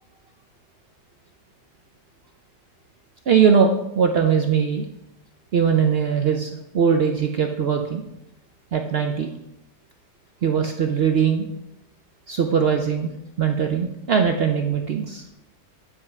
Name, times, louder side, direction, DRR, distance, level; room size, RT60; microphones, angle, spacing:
voice 1, 3.3-4.9 5.5-8.0 8.7-9.3 10.4-11.5 12.3-13.1 13.4-15.2, right 7 dB, 90° right, 4 dB, 0.5 m, -20 dB
9.5 x 5.6 x 4.7 m, 0.85 s
omnidirectional pair, 1.8 m